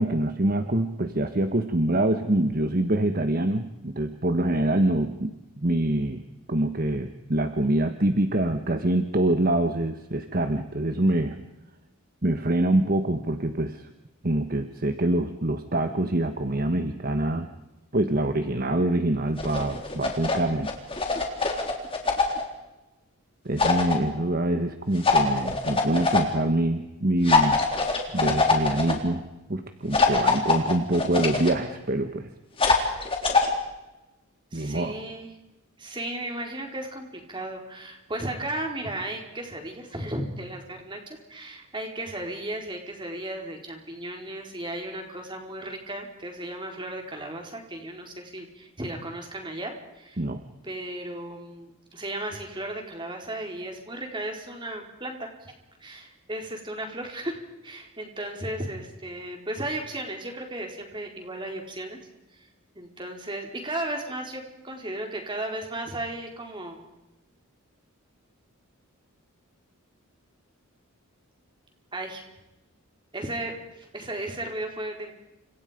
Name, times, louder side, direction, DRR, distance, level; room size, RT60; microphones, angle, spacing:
voice 1, 0.0-6.2 6.5-11.4 12.2-13.9 14.2-17.5 17.9-20.7 23.4-27.6 28.1-29.2 29.5-32.3 34.5-35.0 50.2-50.4, right 1 dB, 40° right, 8 dB, 1.3 m, -25 dB
sound 1, 19.4-20.4 20.7-22.4 23.6-24.0 25.0-26.2 27.3-28.9 29.9-31.5 32.6-33.5, left 4 dB, 25° left, 3.9 m, -23 dB
voice 2, 34.5-35.3 35.8-50.2 50.6-55.5 55.8-62.0 62.3-62.5 62.7-66.8 71.9-72.2 73.1-75.1, right 1 dB, 20° right, 2 dB, 4.5 m, -35 dB
30.0 x 26.5 x 5.2 m, 0.99 s
head